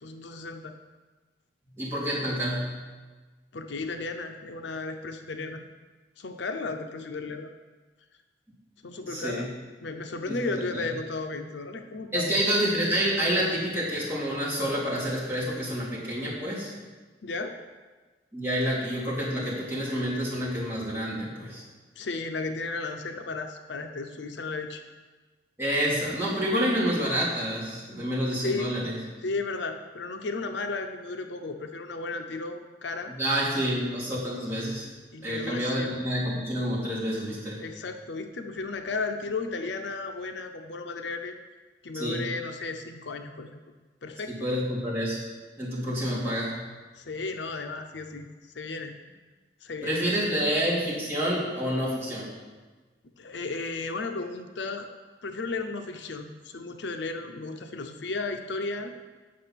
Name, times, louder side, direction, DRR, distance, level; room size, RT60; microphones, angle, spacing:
voice 1, 0.0-0.7 3.5-5.6 6.2-7.5 8.8-9.5 9.8-12.3 17.2-17.6 22.0-24.8 28.4-28.7 29.2-33.1 35.1-36.0 37.6-41.4 41.8-43.5 44.0-44.5 47.0-48.3 48.5-48.9 49.6-50.2 53.2-54.9 55.2-58.9, left 3 dB, 80° left, 6 dB, 0.7 m, -34 dB
voice 2, 1.8-2.7 9.0-9.4 10.3-10.4 10.7-10.8 12.1-16.7 18.3-21.6 25.6-28.9 33.2-34.9 35.2-37.6 41.9-42.2 44.3-45.2 45.6-46.6 49.8-52.3, equal, 15° right, -8 dB, 3.1 m, -28 dB
8.6 x 6.4 x 5.9 m, 1.3 s
head